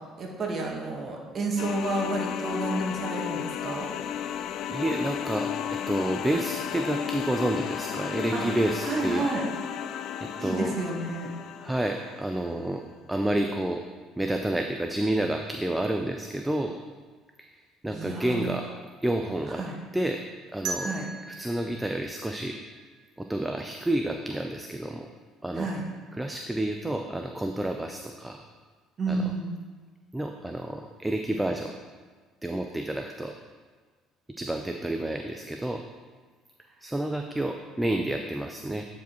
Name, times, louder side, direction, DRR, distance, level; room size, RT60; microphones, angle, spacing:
voice 1, 0.2-3.9 8.3-8.4 8.8-9.4 10.4-11.3 17.9-18.7 19.5-19.8 20.8-21.1 25.5-25.8 29.0-29.5, right 2 dB, 45° right, 0 dB, 1.5 m, -30 dB
sound 1, 1.6-12.3, left 9 dB, 65° left, 0.3 m, -33 dB
voice 2, 4.7-9.3 10.2-10.7 11.6-12.8 13.1-13.8 14.2-16.8 17.4-17.5 17.8-18.7 19.0-19.6 19.9-20.2 20.5-20.9 21.4-22.6 23.2-25.1 25.4-25.7 26.2-28.4 29.1-29.2 30.1-31.7 32.4-33.3 34.4-35.8 36.8-38.9, right 1 dB, 10° right, 4 dB, 0.4 m, -29 dB
sound 2, 20.7-23.5, right 4 dB, 70° right, 0.9 m, -39 dB
9.0 x 4.8 x 3.1 m, 1.5 s
supercardioid pair, 80°, 0 cm